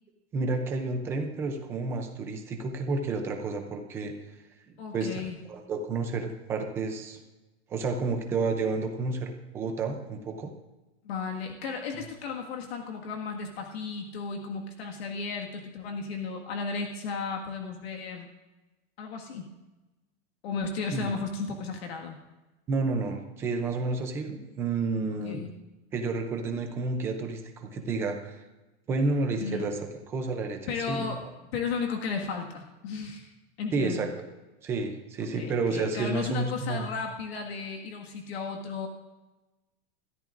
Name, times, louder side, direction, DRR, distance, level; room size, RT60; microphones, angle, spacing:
voice 1, 0.3-4.1 4.9-7.2 7.7-10.5 20.9-21.1 22.7-25.4 25.9-28.4 28.9-29.8 30.1-30.6 30.9-31.1 33.7-34.1 34.6-36.9, right 3 dB, 10° right, 5 dB, 0.4 m, -30 dB
voice 2, 4.8-5.4 11.0-18.3 19.0-19.5 20.4-22.2 25.2-25.6 29.4-29.7 30.7-33.3 33.6-34.1 35.2-38.9, left 5 dB, 60° left, 2 dB, 1.7 m, -34 dB
20.5 x 13.5 x 2.5 m, 1.1 s
supercardioid pair, 170°, 35 cm